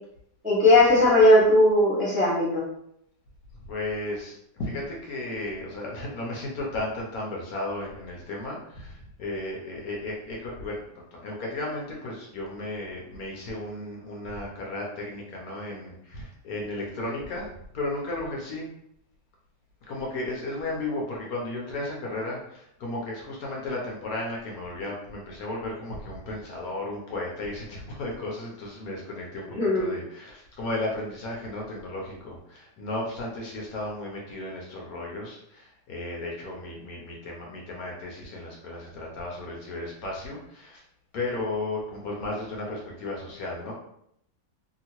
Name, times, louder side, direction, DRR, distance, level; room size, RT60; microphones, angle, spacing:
voice 1, 0.4-2.6 29.5-29.9, left 1 dB, 10° right, -7 dB, 0.6 m, -18 dB
voice 2, 3.7-10.8 11.1-17.5 17.7-18.7 19.8-40.8 41.1-43.7, left 2 dB, 65° left, -2 dB, 1.0 m, -34 dB
2.8 x 2.8 x 2.9 m, 0.74 s
omnidirectional pair, 1.8 m